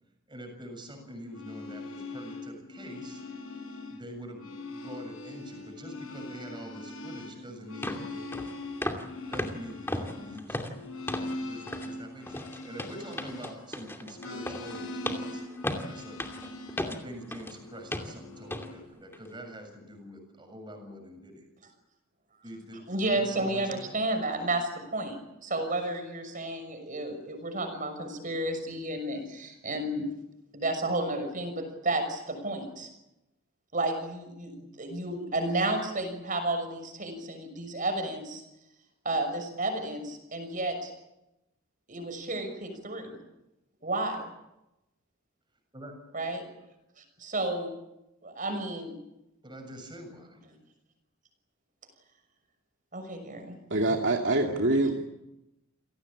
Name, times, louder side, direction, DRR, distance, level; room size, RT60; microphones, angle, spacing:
voice 1, 0.3-3.2 3.9-8.6 9.3-10.7 11.2-15.5 15.9-16.5 16.8-21.4 22.4-23.9 45.7-45.9 49.4-50.4 53.8-54.2, equal, 20° right, 4 dB, 7.2 m, -45 dB
sound 1, 1.2-4.0 4.3-13.8 14.1-16.9 17.6-18.8, left 2 dB, 85° left, 5.9 m, -41 dB
sound 2, 7.2-7.3 7.8-8.0 8.3-8.5 8.8-9.1 9.3-11.4 11.7-11.9 12.3-17.6 17.9-18.1 18.5-18.7 19.1-19.3, left 1 dB, 10° left, 2.5 m, -35 dB
voice 2, 22.9-30.0 30.5-32.9 33.7-38.4 39.0-40.9 41.9-43.2 43.8-44.3 46.1-46.4 47.0-47.7 48.2-49.0 52.9-53.6, right 2 dB, 40° right, 7 dB, 6.2 m, -32 dB
voice 3, 53.7-55.0, right 2 dB, 60° right, 1 dB, 2.5 m, -25 dB
29.0 x 18.0 x 8.8 m, 0.92 s
head